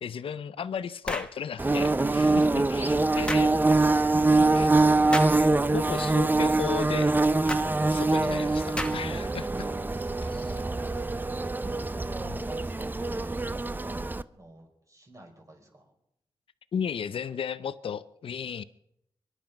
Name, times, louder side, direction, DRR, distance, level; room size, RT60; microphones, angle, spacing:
voice 1, 0.0-3.5 4.1-4.7 5.1-7.1 7.9-9.7 10.3-10.4 16.7-18.6, left 7 dB, 85° left, 14 dB, 0.6 m, -35 dB
sound 1, 1.1-1.4 3.3-3.5 5.1-5.4 7.5-7.7 8.8-9.2, left 1 dB, 10° left, 1.3 m, -32 dB
Bird / Buzz, 1.6-14.2, right 2 dB, 20° right, 0.5 m, -24 dB
voice 2, 9.5-11.4 11.8-15.9, right 1 dB, 35° right, 1 dB, 5.0 m, -49 dB
24.0 x 11.0 x 5.2 m, 0.77 s
cardioid pair, 70°, 9 cm